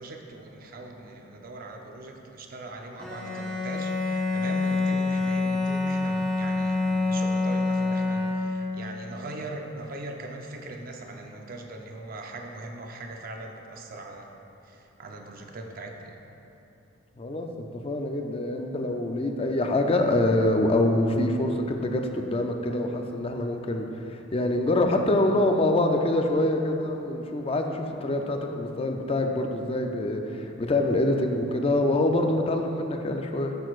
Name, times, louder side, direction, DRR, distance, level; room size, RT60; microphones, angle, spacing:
voice 1, 0.0-14.3 14.6-16.2, right 2 dB, 50° right, 3 dB, 0.6 m, -40 dB
Bowed string instrument, 3.0-8.8, left 3 dB, 5° left, 0.9 m, -26 dB
voice 2, 17.2-33.6, left 1 dB, 30° left, 4 dB, 0.4 m, -25 dB
10.0 x 6.3 x 2.4 m, 2.9 s
head